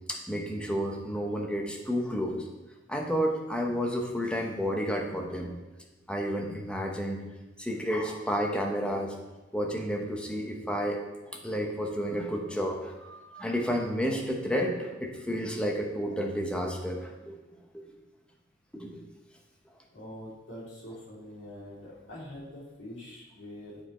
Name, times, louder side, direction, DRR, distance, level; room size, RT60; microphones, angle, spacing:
voice 1, 0.1-2.5 2.9-5.5 6.1-7.2 7.6-9.2 9.5-17.4 17.7-17.9 18.7-19.0, equal, 5° left, 1 dB, 0.9 m, -31 dB
voice 2, 19.9-23.8, left 1 dB, 65° left, -6 dB, 2.8 m, -44 dB
8.7 x 5.0 x 4.3 m, 1.1 s
head